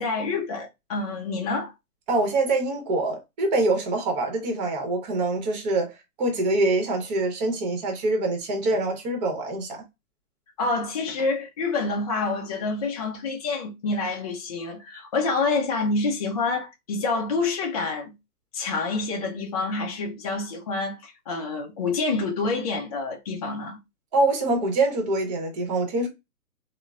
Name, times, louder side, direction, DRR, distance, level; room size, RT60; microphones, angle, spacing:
voice 1, 0.0-1.7 10.6-18.2 18.5-23.8, left 3 dB, 25° left, 0.4 m, -27 dB
voice 2, 2.1-9.9 24.1-26.1, right 2 dB, 30° right, 0.9 m, -25 dB
3.7 x 2.1 x 2.3 m
hypercardioid pair, 140°, 46 cm